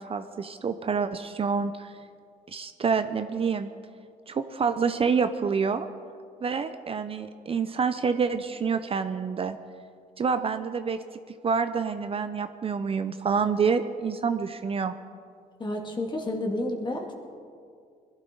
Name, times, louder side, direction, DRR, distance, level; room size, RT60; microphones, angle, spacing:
voice 1, 0.0-1.9 2.5-3.7 4.3-5.9 6.4-9.6 10.2-11.0 11.4-14.9, right 5 dB, 35° right, 9 dB, 0.6 m, -27 dB
voice 2, 15.6-17.1, left 1 dB, 30° left, 1 dB, 2.4 m, -30 dB
20.5 x 12.5 x 3.9 m, 2.2 s
cardioid pair, 90°, 16 cm